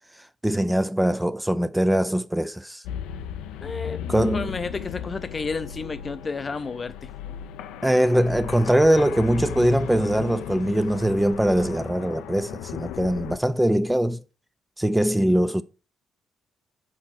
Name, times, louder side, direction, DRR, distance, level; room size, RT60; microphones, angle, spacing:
voice 1, 0.4-2.8 4.1-4.6 7.8-14.2 14.8-15.6, right 1 dB, 5° right, 0.5 m, -22 dB
sound 1, 2.8-13.4, left 10 dB, 75° left, 0.5 m, -36 dB
voice 2, 3.6-4.0 4.3-7.1, left 4 dB, 40° left, 0.7 m, -31 dB
6.0 x 4.3 x 5.9 m
hypercardioid pair, 45°, 0 cm